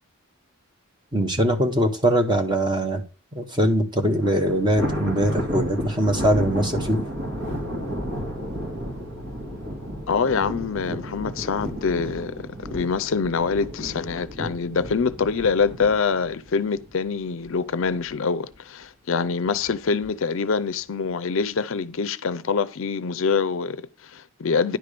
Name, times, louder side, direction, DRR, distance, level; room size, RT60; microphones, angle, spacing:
voice 1, 1.1-3.0 3.3-7.0, right 1 dB, 20° right, 1.1 m, -22 dB
Thunder, 4.2-17.5 17.9-18.2 18.5-18.6 19.5-20.1, equal, 60° right, 2.0 m, -32 dB
voice 2, 10.1-24.8, left 5 dB, 60° left, 0.5 m, -25 dB
10.0 x 3.5 x 6.6 m
head